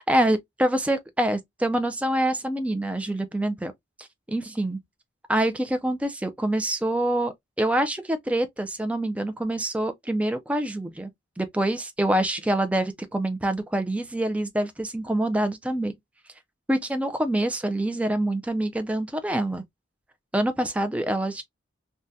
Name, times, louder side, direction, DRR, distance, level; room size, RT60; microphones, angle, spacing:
voice 1, 0.1-3.7 4.3-4.8 5.3-11.1 11.4-15.9 16.7-19.6 20.3-21.4, right 1 dB, 5° right, 0.3 m, -26 dB
3.5 x 2.1 x 2.6 m
head